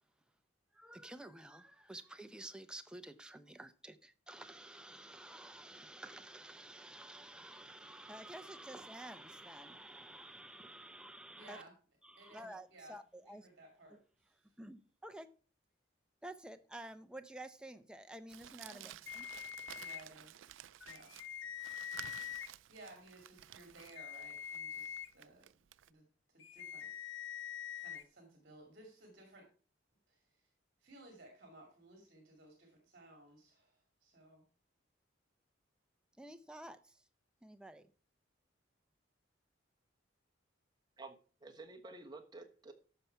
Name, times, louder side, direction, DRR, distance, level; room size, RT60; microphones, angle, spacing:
voice 1, 0.7-11.6 12.0-13.5 13.9-15.3 16.2-19.3 36.2-37.1 37.4-37.9, right 1 dB, 5° right, 0.6 m, -51 dB
voice 2, 11.4-11.7 12.2-13.0 13.2-14.3 18.6-19.0 19.7-20.5 20.8-21.1 22.7-25.5 25.9-26.1 26.3-26.9 27.7-29.5 30.1-30.5 30.8-34.4, right 2 dB, 50° right, 2.6 m, -58 dB
Crumpling crinkling, 18.3-25.9, right 12 dB, 80° right, 0.4 m, -54 dB
sound 1, 19.1-20.0 20.8-22.5 23.8-25.1 26.4-28.0, left 9 dB, 75° left, 0.7 m, -45 dB
voice 3, 41.0-42.7, right 3 dB, 20° right, 1.2 m, -51 dB
13.5 x 5.7 x 4.6 m
head